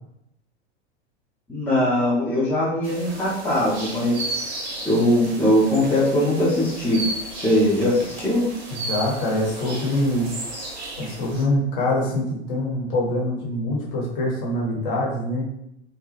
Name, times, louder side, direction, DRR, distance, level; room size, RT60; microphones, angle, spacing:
voice 1, 1.5-4.2 4.8-7.0 7.3-8.5, left 1 dB, 5° left, -9 dB, 0.5 m, -21 dB
sound 1, 2.8-11.4, right 2 dB, 35° right, 0.7 m, -34 dB
voice 2, 8.7-10.3 11.0-15.5, left 1 dB, 45° left, -3 dB, 1.1 m, -24 dB
2.9 x 2.1 x 3.2 m, 0.78 s
figure-of-eight pair, 90°, 36 cm